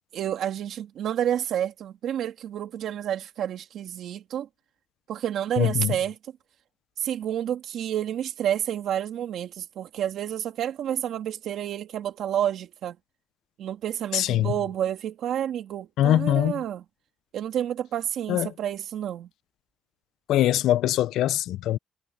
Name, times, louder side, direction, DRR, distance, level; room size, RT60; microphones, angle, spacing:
voice 1, 0.1-4.5 5.1-6.2 7.0-13.0 13.6-16.8 17.3-19.3, right 10 dB, 75° right, 2.2 m, -29 dB
voice 2, 5.6-6.0 14.1-14.5 16.0-16.5 18.3-18.5 20.3-21.8, left 13 dB, 85° left, 0.5 m, -22 dB
cardioid pair, 90°, 0 cm